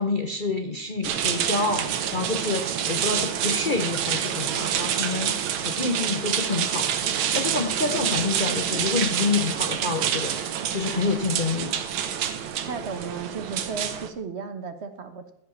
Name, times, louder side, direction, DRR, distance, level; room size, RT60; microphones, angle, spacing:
voice 1, 0.0-11.8, left 3 dB, 50° left, 4 dB, 0.5 m, -28 dB
sound 1, 1.0-14.1, right 9 dB, 85° right, 1.7 m, -27 dB
voice 2, 12.7-15.3, right 5 dB, 45° right, 8 dB, 1.0 m, -34 dB
15.0 x 5.5 x 7.0 m, 0.73 s
omnidirectional pair, 2.2 m